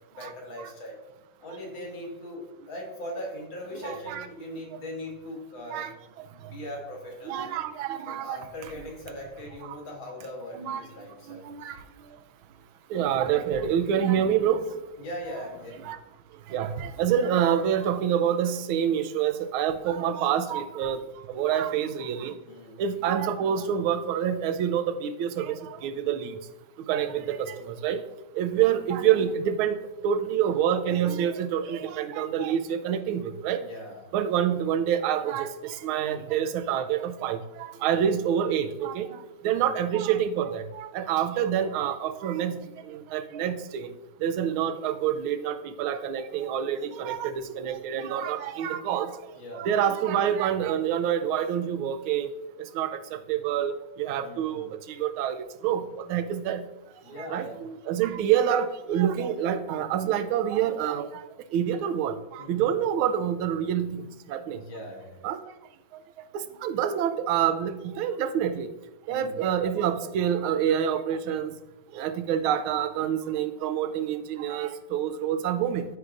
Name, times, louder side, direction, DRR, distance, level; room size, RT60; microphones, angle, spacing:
voice 1, 0.1-1.0 1.4-5.8 6.3-7.5 8.1-11.4 15.0-15.9 22.4-22.8 27.1-27.3 33.6-34.0 39.5-39.6 49.3-49.7 54.2-54.7 57.0-57.6 62.4-62.6 64.5-65.2 69.1-69.5, left 1 dB, 65° left, -2 dB, 2.4 m, -40 dB
voice 2, 3.8-4.3 5.7-5.9 7.2-8.4 8.8-8.9 9.6-9.7 10.5-10.8 11.3-11.8 12.9-14.7 15.8-16.0 16.5-21.0 21.3-22.3 22.8-26.3 26.9-28.0 28.4-29.8 30.0-33.6 34.1-39.2 39.4-42.5 42.9-43.9 44.2-49.1 49.5-52.3 52.7-53.0 53.3-55.4 55.6-56.6 57.1-61.2 61.5-63.9 64.3-64.6 65.2-65.4 66.3-68.7 69.1-71.5 71.9-75.8, right 9 dB, 80° right, 10 dB, 1.4 m, -27 dB
12.5 x 4.8 x 2.5 m, 1.0 s
omnidirectional pair, 2.4 m